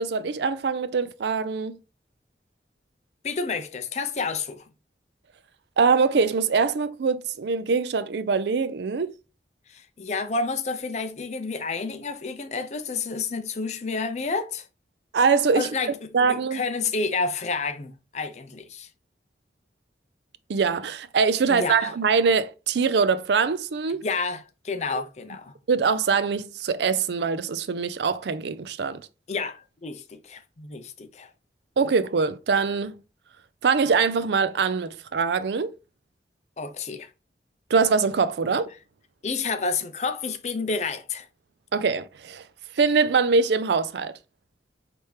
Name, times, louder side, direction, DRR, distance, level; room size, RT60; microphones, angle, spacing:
voice 1, 0.0-1.8 5.8-9.1 15.1-15.7 16.1-16.6 20.5-24.0 25.7-29.1 31.8-32.9 33.6-35.7 37.7-38.7 41.7-42.4 42.8-44.1, right 5 dB, 75° right, 0.4 m, -23 dB
voice 2, 3.2-4.6 9.7-14.7 15.5-18.9 21.5-21.9 24.0-25.5 29.3-31.3 36.6-37.1 39.2-41.3, left 4 dB, 40° left, 0.5 m, -30 dB
4.3 x 3.4 x 3.2 m
head